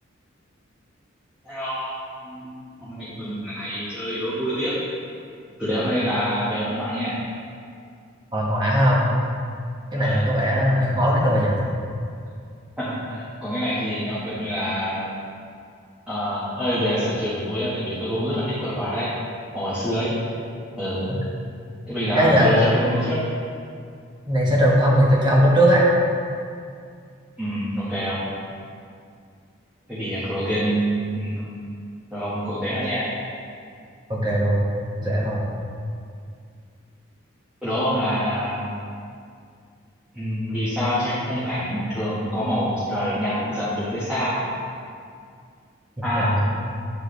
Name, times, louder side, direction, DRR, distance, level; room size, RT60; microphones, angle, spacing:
voice 1, 1.4-1.9 2.2-2.5 2.8-4.7 5.6-7.1 10.0-10.2 12.8-15.1 16.1-19.1 19.5-20.1 20.8-21.1 21.9-23.2 27.4-28.3 29.9-31.4 32.1-33.1 37.6-38.6 40.1-44.3 46.0-46.3, equal, 5° right, -13 dB, 1.4 m, -26 dB
voice 2, 8.3-9.1 9.9-11.6 22.1-22.7 24.3-25.8 34.1-34.6 35.0-35.5 46.1-46.3, equal, 25° right, -5 dB, 1.3 m, -19 dB
9.8 x 4.8 x 3.3 m, 2.3 s
head